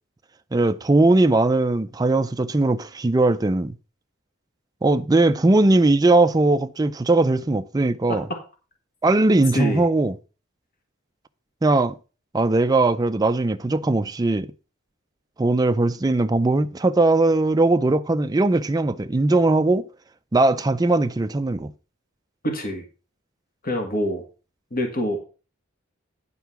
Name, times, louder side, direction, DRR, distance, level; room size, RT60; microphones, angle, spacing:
voice 1, 0.5-3.7 4.8-8.3 9.0-10.1 11.6-12.0 12.3-14.5 15.4-19.9 20.3-21.7, right 2 dB, 20° right, 0.4 m, -19 dB
voice 2, 22.4-22.8 23.6-24.2 24.7-25.2, equal, 45° left, 1.8 m, -25 dB
9.8 x 4.6 x 5.8 m
head